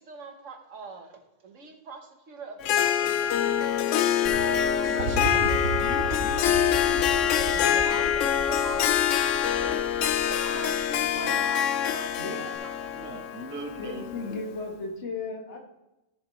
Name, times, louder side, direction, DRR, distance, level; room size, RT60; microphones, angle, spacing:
voice 1, 0.0-5.3 7.4-9.0 10.4-10.8 11.1-13.0, right 5 dB, 70° right, 4 dB, 1.5 m, -44 dB
Harp, 2.6-14.5, left 9 dB, 70° left, 0.9 m, -25 dB
sound 1, 4.3-11.4 12.5-12.6, right 4 dB, 90° right, 1.6 m, -35 dB
voice 2, 4.8-8.0 9.5-11.5 12.3-12.5 12.9-14.4, right 1 dB, 10° right, 3 dB, 0.6 m, -40 dB
voice 3, 13.8-15.7, left 3 dB, 55° left, 2 dB, 1.7 m, -35 dB
13.5 x 6.7 x 3.1 m, 0.95 s
omnidirectional pair, 1.4 m